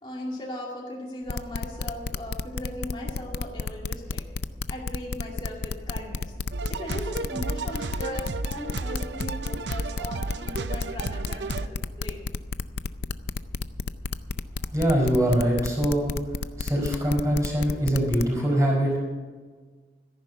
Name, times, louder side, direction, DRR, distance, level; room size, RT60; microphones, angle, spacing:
voice 1, 0.0-4.3 4.7-6.3 6.7-12.3, left 1 dB, 25° left, -3 dB, 2.4 m, -38 dB
sound 1, 1.3-18.3, left 4 dB, 70° left, 0.5 m, -31 dB
sound 2, 6.5-11.7, right 3 dB, 85° right, 0.6 m, -33 dB
voice 2, 14.7-16.2 16.6-19.0, equal, 20° right, -2 dB, 4.9 m, -23 dB
14.0 x 10.5 x 6.8 m, 1.4 s
head